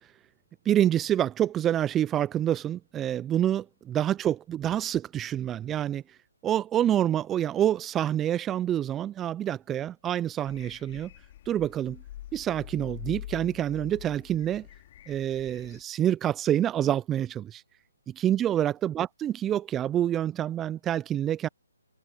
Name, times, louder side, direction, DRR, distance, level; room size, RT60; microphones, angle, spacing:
voice 1, 0.7-6.2 6.4-11.1 11.5-12.0 12.3-14.7 15.1-17.6 18.1-21.5, right 11 dB, 15° right, 0.3 m, -27 dB
sound 1, 10.5-15.8, left 13 dB, 40° left, 3.1 m, -45 dB
figure-of-eight pair, 145°, 0 cm